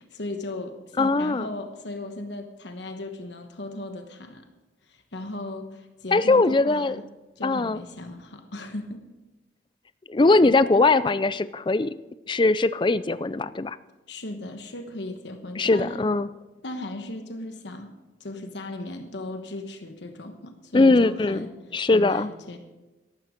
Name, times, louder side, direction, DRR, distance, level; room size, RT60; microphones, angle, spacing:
voice 1, 0.0-4.4 4.8-7.0 7.4-9.0 10.5-10.6 14.1-16.0 16.6-17.9 18.2-21.5 21.9-22.6, left 2 dB, 70° left, 6 dB, 1.2 m, -37 dB
voice 2, 1.0-1.5 6.1-7.0 7.4-7.8 10.1-11.9 12.3-13.8 15.6-16.3 20.7-21.5 21.7-22.3, left 3 dB, 25° left, 15 dB, 0.4 m, -21 dB
13.0 x 12.5 x 5.1 m, 1.1 s
head